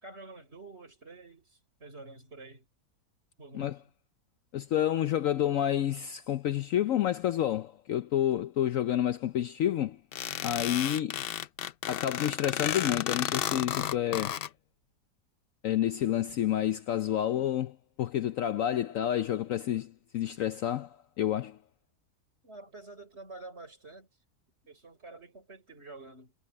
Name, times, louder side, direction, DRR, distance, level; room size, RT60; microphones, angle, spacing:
voice 1, 0.0-2.7 3.4-3.9 22.4-24.1 24.6-26.3, right 3 dB, 40° right, 5.7 m, -48 dB
voice 2, 4.5-10.0 10.4-11.2 11.9-14.4 15.6-21.6, left 11 dB, 65° left, 0.9 m, -29 dB
sound 1, 10.1-14.5, left 10 dB, 80° left, 0.5 m, -33 dB
omnidirectional pair, 1.7 m